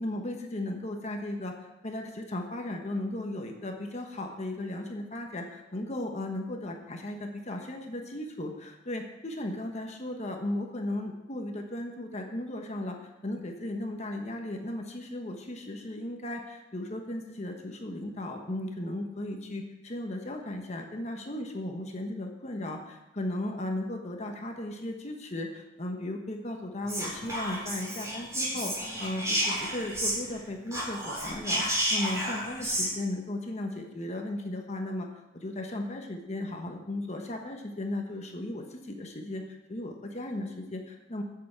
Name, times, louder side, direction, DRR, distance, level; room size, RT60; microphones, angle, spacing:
voice 1, 0.0-1.5 1.8-13.0 13.2-31.6 31.9-35.1 35.3-39.4 39.7-41.2, left 1 dB, 35° left, 3 dB, 1.1 m, -36 dB
Whispering, 26.8-30.4 30.7-32.9, equal, 15° right, 3.6 m, -31 dB
8.3 x 6.8 x 8.5 m, 1.0 s
head